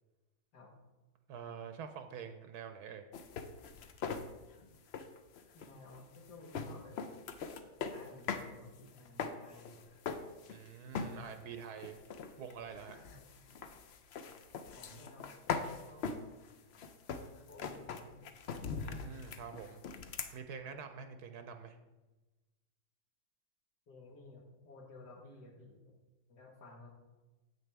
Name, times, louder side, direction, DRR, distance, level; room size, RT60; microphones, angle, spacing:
voice 1, 1.3-3.1 10.5-12.0 12.4-13.0 18.8-19.8 20.3-21.8, right 6 dB, 80° right, 7 dB, 1.1 m, -46 dB
sound 1, 3.1-8.5 8.8-10.7 10.9-11.4 11.8-20.3, left 6 dB, 65° left, 0.6 m, -41 dB
voice 2, 5.5-7.0 7.9-9.9 12.9-13.3 14.7-15.2 15.8-16.2 17.5-18.3 23.9-25.9 26.3-27.0, left 2 dB, 85° left, 1 dB, 2.0 m, -55 dB
9.3 x 7.8 x 3.4 m, 1.1 s
omnidirectional pair, 1.7 m